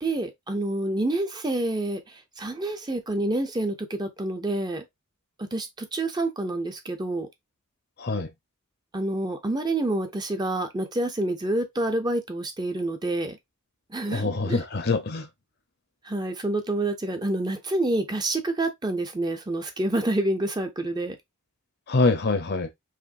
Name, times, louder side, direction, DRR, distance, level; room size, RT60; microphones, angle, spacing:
voice 1, 0.0-4.8 5.5-7.3 8.9-13.4 13.9-14.6 16.0-21.2, right 2 dB, 20° right, 0.6 m, -28 dB
voice 2, 14.1-15.3 21.9-22.7, left 3 dB, 45° left, 0.8 m, -24 dB
5.0 x 3.1 x 2.6 m
head